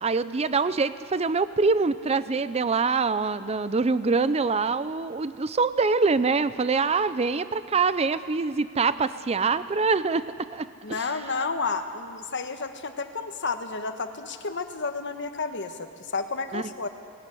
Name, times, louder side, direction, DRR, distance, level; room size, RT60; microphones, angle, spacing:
voice 1, 0.0-11.1 16.5-16.6, right 4 dB, 30° right, 14 dB, 0.5 m, -25 dB
voice 2, 10.8-16.9, left 4 dB, 60° left, 7 dB, 1.4 m, -31 dB
19.5 x 19.0 x 9.9 m, 2.3 s
head